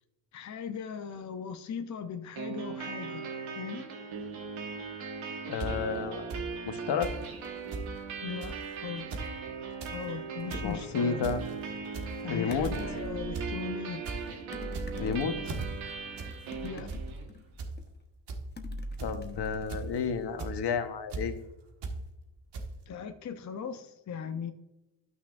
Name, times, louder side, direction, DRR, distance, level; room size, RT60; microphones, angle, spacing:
voice 1, 0.3-3.3 3.5-3.8 8.2-9.1 9.9-11.2 12.2-14.0 16.6-16.9 22.9-24.5, left 6 dB, 40° left, 7 dB, 0.6 m, -39 dB
sound 1, 2.3-17.3, right 5 dB, 90° right, 1.5 m, -39 dB
voice 2, 5.5-6.3 6.6-7.1 10.6-11.4 12.3-12.7 15.0-15.4 19.0-21.4, left 6 dB, 60° left, 8 dB, 1.1 m, -31 dB
sound 2, 5.6-5.7 6.3-6.4 7.0-7.2 7.4-7.5 7.7-7.9 8.4-8.6 9.0-9.3 9.6-10.0 10.3-10.7 11.2-11.5 11.9-12.2 12.6-12.9 13.3-13.5 13.8-14.2 14.7-15.1 15.4-15.7 16.2-16.3 16.6-17.0 17.6-17.7 18.3-18.4 19.0-19.2 19.7-20.0 20.4-20.5 21.1-21.2 21.8-22.0 22.5-22.6, right 3 dB, 60° right, 1.6 m, -37 dB
sound 3, 10.5-11.0 12.5-13.4 14.5-15.8 16.5-17.9 18.6-20.5, left 1 dB, 20° left, 1.0 m, -42 dB
12.5 x 6.0 x 2.5 m, 1.0 s
cardioid pair, 90°, 46 cm